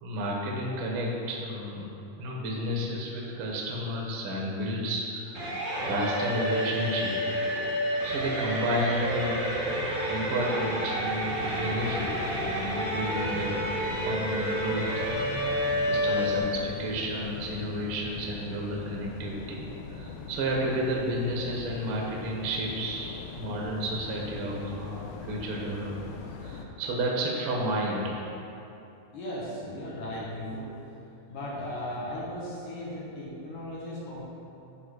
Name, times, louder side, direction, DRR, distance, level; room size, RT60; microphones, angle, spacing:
voice 1, 0.0-1.9 2.2-5.4 5.8-7.1 7.9-9.4 10.1-13.5 13.9-15.6 15.9-26.1 26.4-28.2, equal, 90° right, -2 dB, 1.2 m, -31 dB
sound 1, 5.3-16.4, equal, 40° right, 1.1 m, -30 dB
sound 2, 10.7-26.7, left 5 dB, 85° left, 2.7 m, -42 dB
voice 2, 29.1-30.8 31.3-34.3, left 1 dB, 65° left, -6 dB, 2.2 m, -36 dB
9.6 x 3.8 x 6.3 m, 2.9 s
omnidirectional pair, 4.6 m